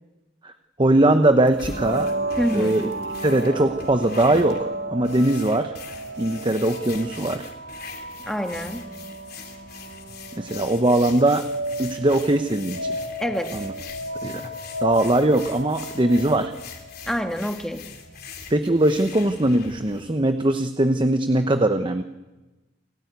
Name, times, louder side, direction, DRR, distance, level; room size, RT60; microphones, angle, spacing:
voice 1, 0.8-2.1 2.5-2.8 3.2-5.7 6.2-7.5 10.4-11.4 11.8-13.0 13.5-13.7 14.2-14.3 14.8-16.5 18.5-22.0, right 1 dB, 25° right, 8 dB, 0.9 m, -20 dB
sound 1, 1.4-20.0, left 5 dB, 55° left, 3.2 m, -42 dB
sound 2, 1.6-17.2, right 1 dB, 75° right, 3.5 m, -33 dB
voice 2, 2.4-2.8 8.3-8.8 13.2-13.5 17.1-17.8, equal, 5° left, 6 dB, 1.7 m, -26 dB
28.0 x 14.5 x 9.5 m, 1.1 s
head